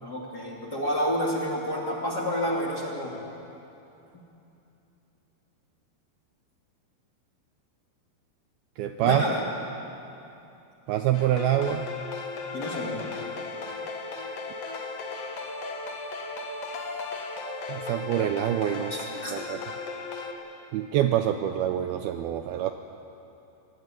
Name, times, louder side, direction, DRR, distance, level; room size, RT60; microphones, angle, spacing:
voice 1, 0.0-3.2 9.0-9.4 12.5-13.1 18.9-19.3, equal, 25° left, -3 dB, 2.5 m, -29 dB
voice 2, 8.8-9.2 10.9-11.9 17.7-19.0 19.3-19.6 20.7-22.7, right 11 dB, 85° right, 7 dB, 2.2 m, -26 dB
sound 1, 11.1-20.3, left 4 dB, 50° left, 1.9 m, -36 dB
24.5 x 18.5 x 9.1 m, 2.8 s
omnidirectional pair, 5.2 m